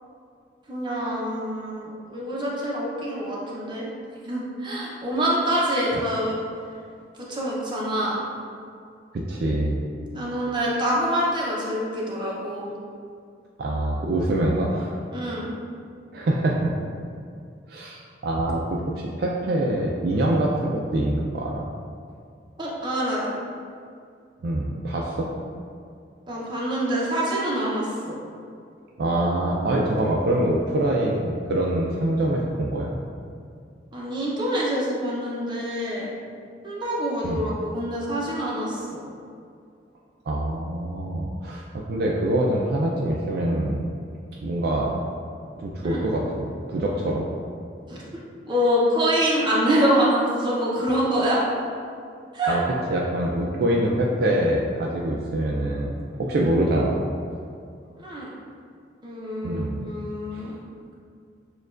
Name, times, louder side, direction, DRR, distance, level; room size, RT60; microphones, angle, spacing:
voice 1, 0.7-3.9 4.2-6.4 7.3-8.2 10.1-12.7 15.1-15.5 22.6-23.3 26.3-28.2 33.9-36.1 36.6-39.0 45.8-46.0 47.9-48.2 48.5-51.4 52.3-52.6 58.0-58.3 59.0-60.5, equal, 25° right, -5 dB, 0.7 m, -25 dB
voice 2, 9.1-9.8 13.6-14.9 16.1-16.7 17.7-21.6 24.4-25.3 29.0-32.9 37.2-37.4 40.3-43.8 44.4-44.9 45.6-47.3 52.5-52.6 52.9-57.0 59.4-59.9 60.3-60.4, right 1 dB, 55° right, -3 dB, 0.4 m, -24 dB
6.5 x 2.3 x 2.4 m, 2.3 s
head